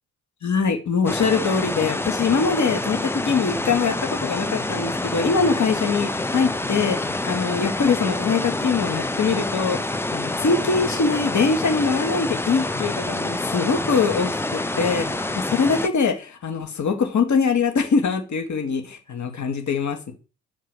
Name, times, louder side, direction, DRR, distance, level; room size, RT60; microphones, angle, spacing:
voice 1, 0.4-20.1, left 5 dB, 40° left, 6 dB, 1.7 m, -23 dB
sound 1, 1.1-15.9, left 2 dB, 5° left, 0.5 m, -27 dB
6.5 x 4.6 x 6.2 m, 0.34 s
figure-of-eight pair, 45°, 46 cm